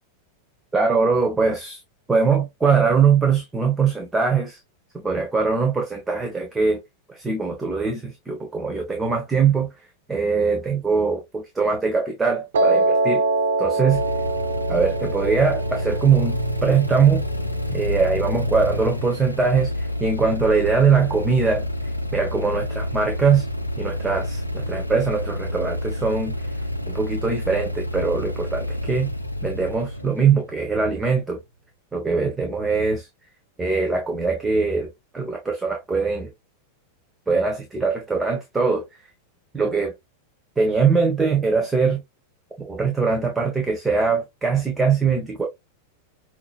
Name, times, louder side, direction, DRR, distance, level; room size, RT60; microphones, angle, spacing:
voice 1, 0.7-1.8 2.1-4.6 5.0-6.8 7.1-9.7 10.1-13.2 13.6-14.0 14.7-17.2 17.7-21.7 22.1-23.4 23.8-26.3 26.9-29.1 29.4-31.4 31.9-33.1 33.6-34.9 35.1-36.3 37.3-38.9 39.5-39.9 40.6-42.0 42.6-45.4, right 5 dB, 10° right, 1.2 m, -22 dB
Piano, 12.5-18.7, right 2 dB, 65° right, 0.7 m, -25 dB
sound 1, 13.9-31.1, left 1 dB, 90° left, 0.7 m, -28 dB
6.2 x 3.0 x 2.3 m
figure-of-eight pair, 90°, 0 cm